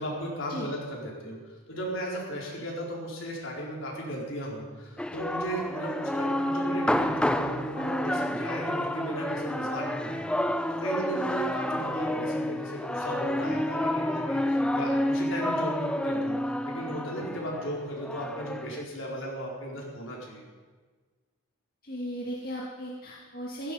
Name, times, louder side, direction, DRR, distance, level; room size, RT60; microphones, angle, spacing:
voice 1, 0.0-10.3 10.7-16.4 16.7-20.4, right 1 dB, 70° left, -2 dB, 4.3 m, -36 dB
sound 1, 5.0-18.8, left 1 dB, 5° left, 0.4 m, -29 dB
voice 2, 21.8-23.7, equal, 45° left, -4 dB, 2.0 m, -36 dB
16.0 x 15.0 x 5.5 m, 1.4 s
head